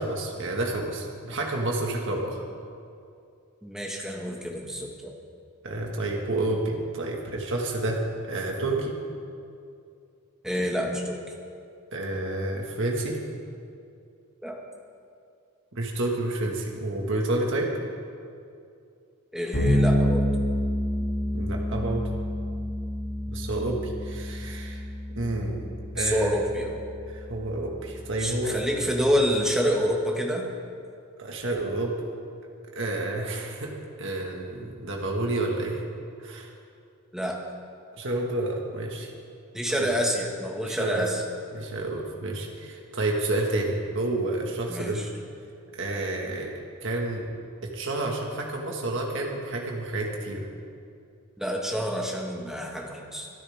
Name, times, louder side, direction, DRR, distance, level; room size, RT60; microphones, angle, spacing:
voice 1, 0.0-2.4 5.6-8.0 8.3-9.0 11.9-13.2 15.7-17.7 21.3-22.1 23.3-24.8 25.2-25.7 26.0-26.3 27.1-28.6 31.2-31.9 32.8-35.8 36.2-36.5 38.0-39.1 39.7-39.9 40.6-41.1 41.5-45.0 45.7-46.5 46.8-47.3 47.6-50.5, right 2 dB, 60° right, 0 dB, 1.8 m, -29 dB
voice 2, 3.6-5.1 10.4-11.2 14.4-14.5 19.3-20.2 26.0-26.8 28.2-30.4 37.1-37.4 39.5-41.2 44.7-45.1 51.4-53.3, equal, ahead, -1 dB, 1.7 m, -27 dB
Bass guitar, 19.5-29.2, equal, 85° left, 3.9 m, -29 dB
24.0 x 12.5 x 3.6 m, 2.5 s
head